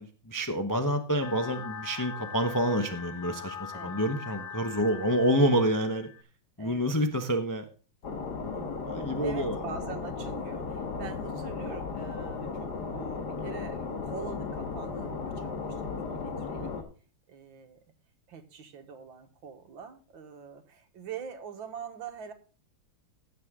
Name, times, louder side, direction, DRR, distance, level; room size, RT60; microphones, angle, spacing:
voice 1, 0.0-6.1 6.6-7.6 8.8-9.5, equal, 25° left, 6 dB, 0.4 m, -28 dB
sound 1, 1.2-6.2, left 7 dB, 80° left, 2.4 m, -42 dB
voice 2, 3.7-4.2 4.9-5.2 6.6-7.0 8.5-16.7 17.3-17.8 18.3-22.3, right 6 dB, 70° right, 8 dB, 2.1 m, -44 dB
sound 2, 8.0-16.8, left 4 dB, 50° left, 2.1 m, -35 dB
16.5 x 6.7 x 3.7 m, 0.36 s
omnidirectional pair, 2.3 m